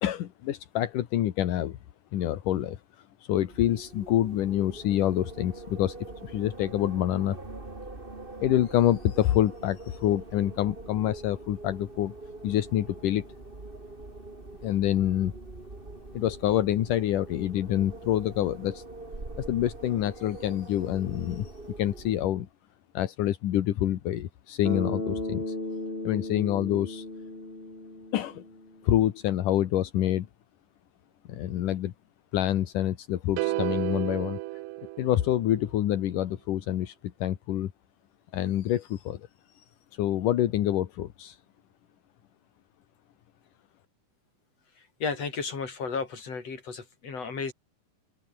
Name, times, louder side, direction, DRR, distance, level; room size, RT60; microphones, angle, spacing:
voice 1, 0.0-1.8 2.1-2.8 3.2-7.4 8.4-12.1 12.4-13.3 14.6-15.3 16.1-18.8 19.4-22.5 22.9-25.6 26.0-27.1 28.1-28.4 28.8-30.3 31.3-31.9 32.3-34.4 35.0-36.9 37.2-37.7 38.3-39.2 39.6-39.7 39.9-41.4, left 12 dB, 75° left, 2.9 m, -27 dB
Wind, 3.4-22.5, right 2 dB, 15° right, 3.0 m, -44 dB
Bass guitar, 24.6-28.9, left 2 dB, 15° left, 4.9 m, -35 dB
sound 1, 33.4-35.7, right 18 dB, 85° right, 2.3 m, -32 dB
voice 2, 45.0-47.5, left 5 dB, 50° left, 5.6 m, -33 dB
open air
omnidirectional pair, 3.8 m